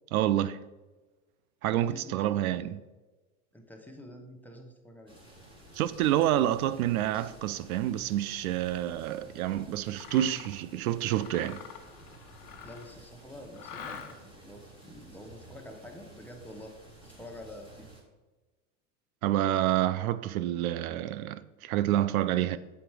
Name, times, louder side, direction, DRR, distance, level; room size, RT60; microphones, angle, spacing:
voice 1, 0.1-0.6 1.6-2.8 5.8-11.6 19.2-22.6, right 13 dB, 80° right, 0.5 m, -28 dB
voice 2, 1.7-2.7 3.5-5.2 12.6-16.8 17.0-17.9 22.4-22.6, left 1 dB, 5° left, 0.9 m, -48 dB
sound 1, 5.1-18.0, right 1 dB, 10° right, 2.2 m, -53 dB
Mechanisms, 9.9-10.6 11.1-13.0 13.5-14.4, left 7 dB, 55° left, 1.3 m, -45 dB
7.1 x 4.3 x 4.7 m
hypercardioid pair, 105°, 42 cm